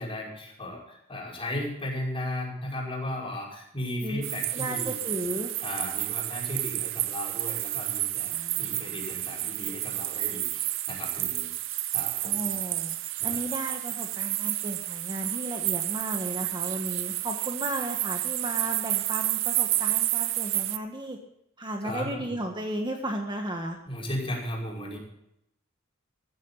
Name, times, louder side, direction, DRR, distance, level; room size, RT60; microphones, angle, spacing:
voice 1, 0.0-5.0 5.6-12.6 13.2-13.4 21.8-22.4 23.9-25.0, left 1 dB, 25° left, -3 dB, 5.6 m, -36 dB
sound 1, 4.2-20.8, right 15 dB, 65° right, 0.7 m, -30 dB
voice 2, 4.5-5.5 8.3-8.9 12.2-13.0 13.2-21.2 21.6-23.8, right 1 dB, 20° right, 3 dB, 1.5 m, -34 dB
15.0 x 14.0 x 4.0 m, 0.80 s
head